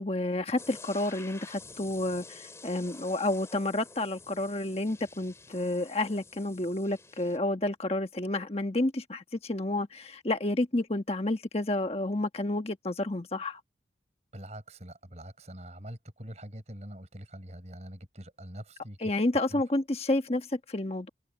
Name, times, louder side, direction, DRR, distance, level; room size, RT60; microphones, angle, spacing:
voice 1, 0.0-13.6 19.0-21.1, left 2 dB, 35° left, 1.3 m, -30 dB
sound 1, 0.6-7.4, left 3 dB, 15° left, 3.7 m, -49 dB
voice 2, 14.3-19.1 19.5-19.6, equal, 40° right, 6.4 m, -44 dB
head